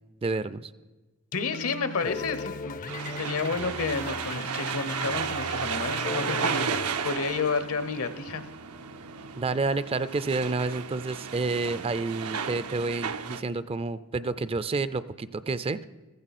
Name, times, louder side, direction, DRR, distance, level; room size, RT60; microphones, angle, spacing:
voice 1, 0.2-0.7 9.4-15.9, right 3 dB, 25° right, 15 dB, 0.4 m, -29 dB
voice 2, 1.3-6.7 7.0-8.4, left 4 dB, 75° left, 12 dB, 0.9 m, -31 dB
sound 1, 1.3-6.9, left 3 dB, 35° left, 0.5 m, -37 dB
sound 2, 2.9-13.4, right 6 dB, 85° right, 0.8 m, -33 dB
15.0 x 14.5 x 4.2 m, 1.2 s
head